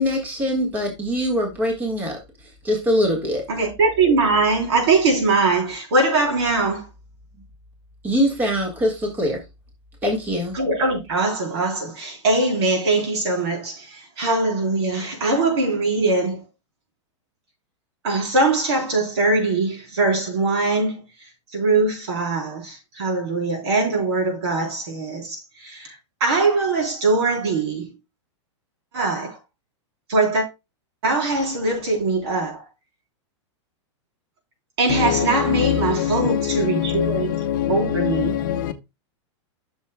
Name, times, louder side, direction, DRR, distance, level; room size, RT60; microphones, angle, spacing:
voice 1, 0.0-2.2 2.6-3.4 8.0-9.4 10.0-10.5, equal, 10° right, 1.7 m, -22 dB
voice 2, 3.5-6.9 10.5-16.4 18.0-21.0 21.5-26.0 26.2-27.9 28.9-29.4 30.1-30.5 31.0-32.6 34.8-37.3 37.7-38.4, right 3 dB, 60° right, 3.7 m, -21 dB
voice 3, 34.9-38.7, left 11 dB, 40° left, 0.8 m, -23 dB
12.5 x 6.4 x 2.2 m
supercardioid pair, 180°, 16 cm